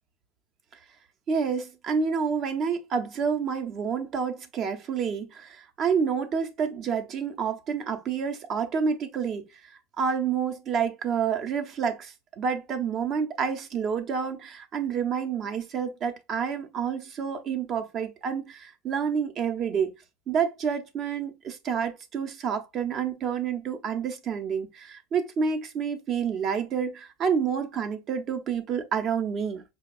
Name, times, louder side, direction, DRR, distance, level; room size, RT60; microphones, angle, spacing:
voice 1, 1.3-9.5 10.0-19.9 20.3-29.6, right 6 dB, 35° right, 0.8 m, -29 dB
5.9 x 2.3 x 2.2 m
supercardioid pair, 145°, 0 cm